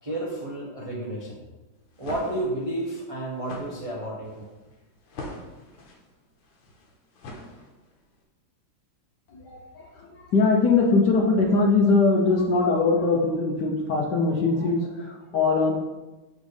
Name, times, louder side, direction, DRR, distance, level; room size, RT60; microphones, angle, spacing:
voice 1, 0.0-1.4 2.0-4.4, right 1 dB, 45° right, -5 dB, 0.4 m, -31 dB
sound 1, 1.8-8.0, left 2 dB, 90° left, 2.0 m, -43 dB
voice 2, 9.3-15.7, left 3 dB, 65° left, 0 dB, 1.2 m, -22 dB
7.6 x 5.1 x 3.2 m, 1.1 s
omnidirectional pair, 2.4 m